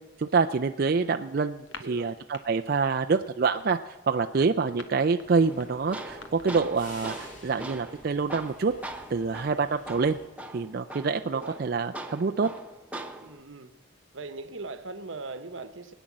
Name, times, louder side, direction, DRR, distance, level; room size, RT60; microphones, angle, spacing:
voice 1, 0.2-3.8 4.1-8.7 9.1-10.2 10.5-12.5, right 4 dB, 50° right, 0.4 m, -26 dB
sound 1, 1.6-2.4 2.7-3.0 3.3-6.9, left 4 dB, 80° left, 1.2 m, -46 dB
voice 2, 1.8-2.2 11.3-11.6 13.2-13.7 14.1-15.9, right 3 dB, 80° right, 1.0 m, -40 dB
sound 2, 5.2-10.3, left 1 dB, 40° left, 2.4 m, -49 dB
Tools, 5.4-13.4, right 1 dB, 5° right, 0.8 m, -41 dB
20.5 x 9.1 x 7.4 m
head